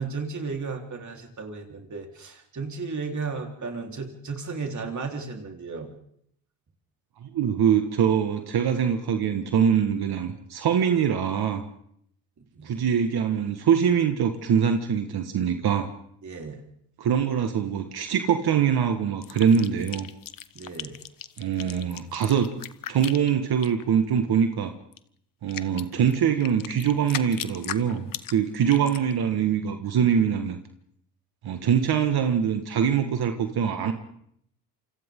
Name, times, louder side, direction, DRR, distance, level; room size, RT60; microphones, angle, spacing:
voice 1, 0.0-5.9 12.5-12.9 16.2-16.6 20.5-21.0, right 4 dB, 40° right, 2 dB, 4.2 m, -34 dB
voice 2, 7.2-11.6 12.6-15.9 17.0-20.1 21.4-22.5 22.9-24.7 25.4-30.6 31.4-33.9, right 8 dB, 60° right, 6 dB, 1.8 m, -23 dB
sound 1, 19.2-23.8 24.9-25.0 25.5-29.1, left 10 dB, 50° left, 1.2 m, -37 dB
28.0 x 25.5 x 3.9 m, 0.70 s
supercardioid pair, 65°, 43 cm